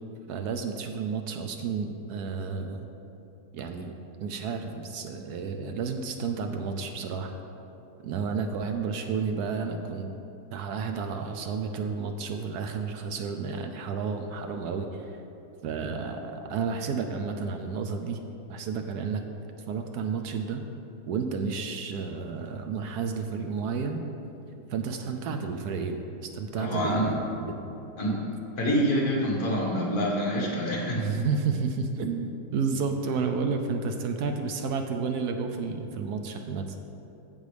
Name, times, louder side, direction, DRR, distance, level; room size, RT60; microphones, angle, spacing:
voice 1, 0.3-2.9 3.5-3.9 4.2-7.3 8.0-10.1 10.5-15.1 15.6-18.2 18.5-19.2 19.7-20.6 21.1-24.0 24.7-27.6 31.0-36.7, right 5 dB, 75° right, 5 dB, 1.1 m, -31 dB
voice 2, 26.5-27.1 28.0-28.3 28.6-31.0, equal, 60° left, -2 dB, 1.9 m, -26 dB
15.0 x 5.4 x 3.3 m, 2.8 s
omnidirectional pair, 1.8 m